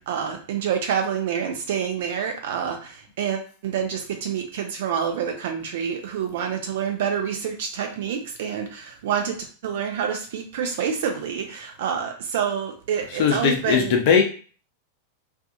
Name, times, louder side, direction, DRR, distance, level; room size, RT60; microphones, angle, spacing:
voice 1, 0.0-9.4 9.6-14.0, right 7 dB, 55° right, 5 dB, 0.6 m, -27 dB
voice 2, 13.2-14.3, left 6 dB, 50° left, 3 dB, 0.6 m, -19 dB
2.5 x 2.4 x 2.6 m, 0.40 s
figure-of-eight pair, 90°, 0 cm